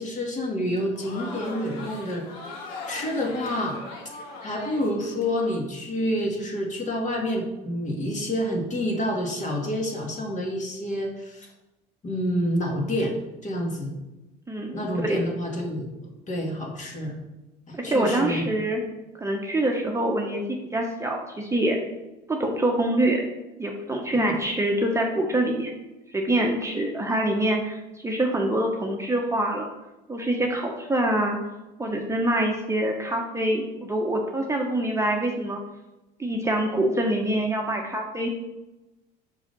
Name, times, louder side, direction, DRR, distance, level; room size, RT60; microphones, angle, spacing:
voice 1, 0.0-2.2 2.9-3.7 4.4-11.5 12.0-13.1 13.4-14.0 14.7-15.9 16.3-17.2 17.7-18.5 24.1-24.3, equal, 35° left, 0 dB, 2.0 m, -28 dB
Crowd, 0.7-5.5, left 3 dB, 90° left, 1.4 m, -39 dB
voice 2, 14.5-15.2 17.7-18.8 19.2-21.8 22.3-23.3 23.6-25.8 26.1-29.7 30.1-31.4 31.8-35.6 36.2-38.3, right 1 dB, 15° right, 0 dB, 1.0 m, -25 dB
5.7 x 4.7 x 5.3 m, 1.0 s
supercardioid pair, 85°, 21 cm